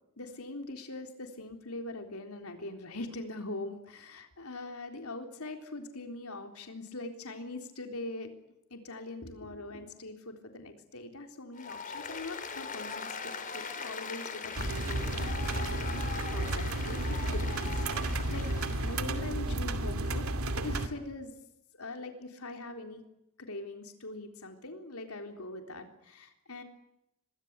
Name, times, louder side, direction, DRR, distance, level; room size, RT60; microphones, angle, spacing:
voice 1, 0.2-8.3 8.7-20.3 20.6-21.3 21.7-23.0 23.4-26.6, left 2 dB, 85° left, 5 dB, 3.8 m, -42 dB
Applause, 11.6-19.1, left 5 dB, 40° left, 4.0 m, -40 dB
sound 1, 14.6-20.9, right 1 dB, 80° right, 2.5 m, -32 dB
26.0 x 23.5 x 8.2 m, 0.85 s
head